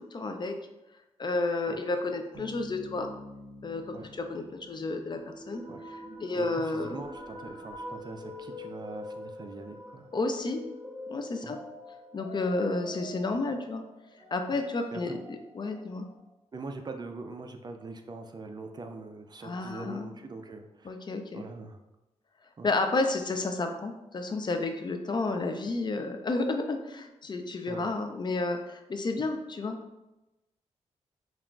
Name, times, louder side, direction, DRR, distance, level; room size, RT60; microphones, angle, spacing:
voice 1, 0.1-0.5 1.2-3.1 3.6-5.2 5.5-5.6 6.2-7.0 10.1-10.6 11.1-11.6 12.1-13.8 14.3-15.2 15.5-16.1 19.4-20.1 20.8-21.4 22.6-29.8, left 3 dB, 40° left, 5 dB, 0.4 m, -31 dB
Bass guitar, 2.3-6.0, equal, 90° right, 0.5 m, -48 dB
sound 1, 5.2-16.2, left 1 dB, 10° right, 1.0 m, -45 dB
voice 2, 6.3-10.1 11.4-11.6 14.9-15.2 16.5-21.0 21.3-21.8 22.6-22.7 27.7-27.9, right 3 dB, 35° right, 5 dB, 0.4 m, -42 dB
5.6 x 2.4 x 2.3 m, 0.98 s
cardioid pair, 95°, 12 cm